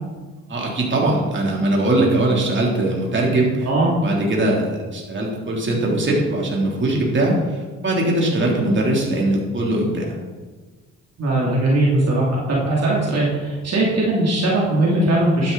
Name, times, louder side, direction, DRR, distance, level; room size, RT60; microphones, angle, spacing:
voice 1, 0.5-3.7 4.0-10.2, right 1 dB, 40° right, -2 dB, 3.3 m, -21 dB
voice 2, 11.2-15.5, right 2 dB, 55° right, -4 dB, 3.0 m, -19 dB
12.0 x 9.9 x 4.1 m, 1.3 s
cardioid pair, 90°, 30 cm